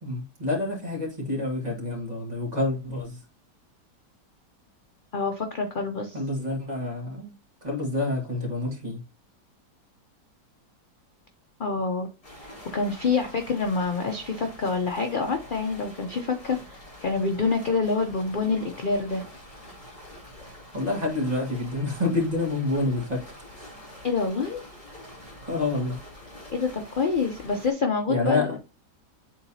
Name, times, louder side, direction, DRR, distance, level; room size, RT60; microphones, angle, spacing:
voice 1, 0.0-3.2 6.1-7.3 7.6-9.0 20.7-23.7 25.4-26.0 28.1-28.6, left 2 dB, 25° right, 1.9 m, -28 dB
voice 2, 5.1-6.2 11.6-12.1 12.4-19.2 24.0-24.6 26.5-28.5, left 4 dB, 50° left, 0.6 m, -27 dB
sound 1, 12.2-27.7, left 1 dB, 20° left, 2.3 m, -46 dB
9.1 x 4.0 x 2.7 m
omnidirectional pair, 1.9 m